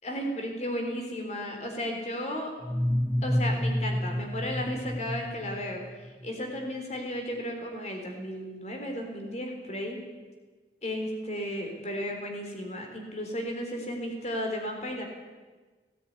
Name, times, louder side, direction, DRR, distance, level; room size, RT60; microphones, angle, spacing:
voice 1, 0.0-2.5 3.2-5.8 6.2-10.0 10.8-15.0, equal, 40° left, 2 dB, 4.0 m, -34 dB
sound 1, 2.6-6.3, equal, 15° left, 0.6 m, -29 dB
18.0 x 16.5 x 9.7 m, 1.3 s
head